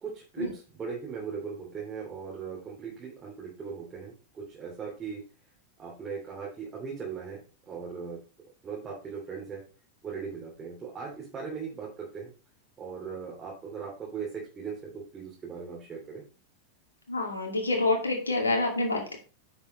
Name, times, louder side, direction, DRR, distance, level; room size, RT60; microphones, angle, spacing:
voice 1, 0.0-5.2 5.8-7.4 7.7-8.2 8.6-9.6 10.0-12.3 12.8-16.2, right 6 dB, 20° right, -3 dB, 3.0 m, -38 dB
voice 2, 17.1-19.1, left 2 dB, 75° left, 2 dB, 2.4 m, -27 dB
9.6 x 7.0 x 3.2 m, 0.36 s
figure-of-eight pair, 90°, 0 cm